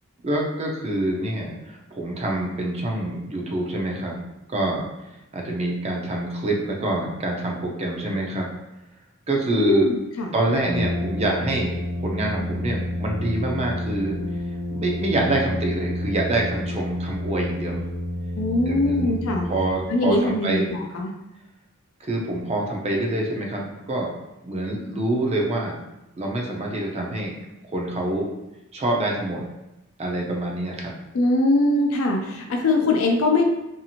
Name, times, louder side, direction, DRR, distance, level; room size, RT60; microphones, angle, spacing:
voice 1, 0.2-4.2 4.5-4.9 5.3-8.5 9.3-9.8 10.3-14.2 14.7-17.8 18.7-19.2 19.4-20.7 22.0-24.1 24.4-25.7 26.2-27.3 27.7-28.3 28.7-29.4 30.0-30.9, right 1 dB, 30° right, 0 dB, 0.4 m, -26 dB
voice 2, 9.5-10.3 18.4-19.4 19.9-20.6 20.9-21.1 31.1-33.4, left 2 dB, 75° left, 2 dB, 0.4 m, -21 dB
Brass instrument, 10.6-20.1, left 1 dB, 65° right, 1.1 m, -29 dB
2.7 x 2.4 x 2.8 m, 0.94 s
head